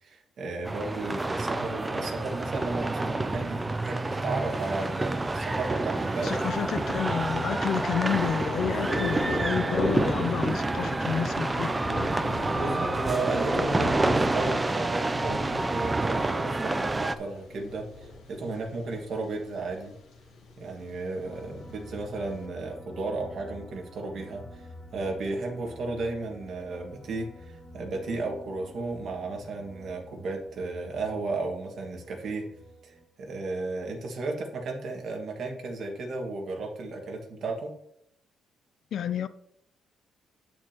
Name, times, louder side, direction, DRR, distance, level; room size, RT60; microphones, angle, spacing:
voice 1, 0.0-6.4 12.1-19.9 20.6-32.5 32.8-37.8, right 3 dB, 45° right, 1.8 m, -34 dB
sound 1, 0.6-17.1, right 2 dB, 15° right, 0.4 m, -28 dB
Thunder, 4.5-22.4, left 2 dB, 70° left, 2.6 m, -38 dB
voice 2, 6.2-11.7 38.9-39.3, left 8 dB, 50° left, 0.4 m, -30 dB
sound 2, 21.2-33.1, left 1 dB, 5° left, 2.0 m, -48 dB
9.1 x 8.5 x 3.0 m
cardioid pair, 170°, 0 cm